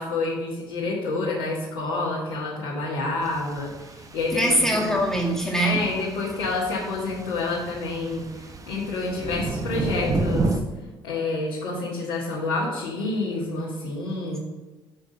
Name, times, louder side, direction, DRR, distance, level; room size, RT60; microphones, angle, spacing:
voice 1, 0.0-4.9 5.6-10.6 11.0-14.4, left 3 dB, 70° left, 1.5 m, -28 dB
sound 1, 3.2-10.6, right 3 dB, 30° right, 0.9 m, -32 dB
voice 2, 4.3-5.9, right 1 dB, 5° left, 2.0 m, -22 dB
6.9 x 5.2 x 6.3 m
figure-of-eight pair, 50°, 11 cm